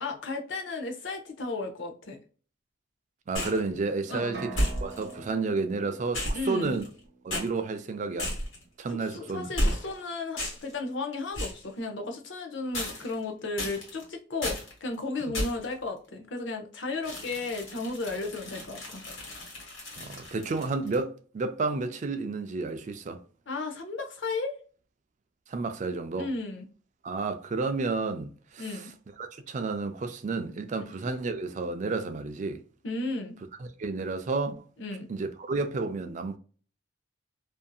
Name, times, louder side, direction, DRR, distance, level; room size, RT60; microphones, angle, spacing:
voice 1, 0.0-2.2 4.1-4.3 6.3-6.8 8.9-19.0 23.5-24.5 26.2-26.7 28.6-28.9 30.8-30.9 32.8-33.4 34.8-35.1, left 3 dB, 65° left, 0.7 m, -34 dB
sound 1, 3.3-3.7 4.5-5.1 6.1-7.0 7.3-7.5 8.2-8.6 9.6-10.0 10.4-10.7 11.3-11.6 12.7-13.2 13.6-14.0 14.4-14.7 15.3-15.7 17.0-21.0, equal, 85° left, 1.5 m, -33 dB
voice 2, 3.3-6.8 7.2-8.3 8.8-9.5 15.2-15.3 20.0-23.2 25.5-26.3 27.0-28.8 29.2-32.6 33.6-34.6 35.1-36.4, right 3 dB, 35° right, 0.3 m, -31 dB
sound 2, 4.3-8.1, right 3 dB, 55° right, 0.8 m, -45 dB
2.6 x 2.5 x 2.3 m
head